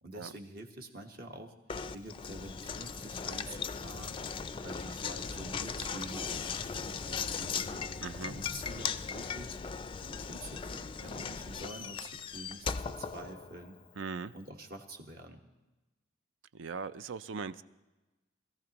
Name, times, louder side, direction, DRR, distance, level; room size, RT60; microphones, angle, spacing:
voice 1, 0.0-1.5 1.9-4.2 4.6-7.9 8.3-9.6 10.0-13.8 14.3-15.4, right 2 dB, 50° right, 3 dB, 1.3 m, -47 dB
Knock, 1.7-13.8, left 6 dB, 25° left, 0.4 m, -38 dB
voice 2, 8.0-8.4 14.0-14.3 16.5-17.6, right 5 dB, 75° right, 15 dB, 0.4 m, -39 dB
21.5 x 14.0 x 3.0 m, 1.1 s
head